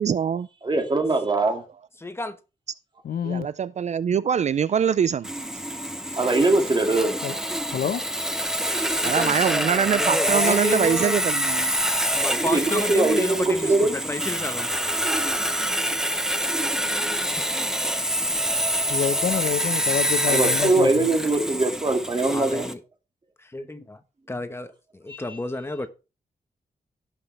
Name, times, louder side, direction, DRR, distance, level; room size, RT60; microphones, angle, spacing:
voice 1, 0.0-0.5 3.2-5.3 9.0-11.7, right 8 dB, 50° right, 0.4 m, -23 dB
voice 2, 0.6-1.6 6.2-7.2 8.7-8.8 12.3-13.9 20.3-22.7 25.1-25.4, right 2 dB, 30° right, 2.3 m, -22 dB
voice 3, 2.0-2.4 9.0-11.2 12.1-14.7 18.2-18.7 19.4-19.9 21.3-21.6 22.3-22.8 23.4-25.9, left 1 dB, 15° left, 1.1 m, -31 dB
voice 4, 3.0-3.5 7.2-7.3 7.7-8.0 18.9-21.1, left 8 dB, 80° left, 1.0 m, -27 dB
Sawing, 5.2-22.7, equal, 5° right, 1.0 m, -26 dB
17.0 x 5.9 x 3.3 m
wide cardioid pair, 130°, 15 cm